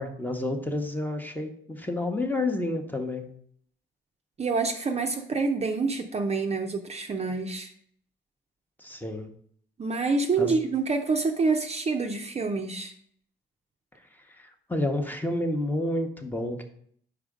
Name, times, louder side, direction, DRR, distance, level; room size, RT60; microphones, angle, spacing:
voice 1, 0.0-3.3 8.8-9.3 10.4-10.5 14.3-16.6, left 1 dB, 10° left, 4 dB, 0.9 m, -30 dB
voice 2, 4.4-7.7 9.8-12.9, right 4 dB, 30° right, 4 dB, 0.6 m, -27 dB
4.9 x 4.7 x 5.0 m, 0.63 s
cardioid pair, 90°, 20 cm